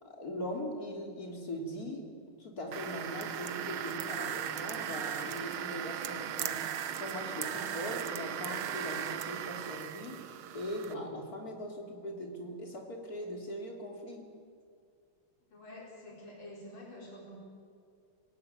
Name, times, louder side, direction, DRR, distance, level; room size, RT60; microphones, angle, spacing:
voice 1, 0.0-2.1 2.4-10.3 10.5-14.3, equal, 45° left, 1 dB, 3.6 m, -40 dB
sound 1, 2.7-10.9, right 10 dB, 85° right, 1.8 m, -37 dB
voice 2, 15.5-17.4, left 1 dB, 75° left, -2 dB, 5.5 m, -48 dB
26.0 x 17.0 x 9.2 m, 2.3 s
omnidirectional pair, 2.2 m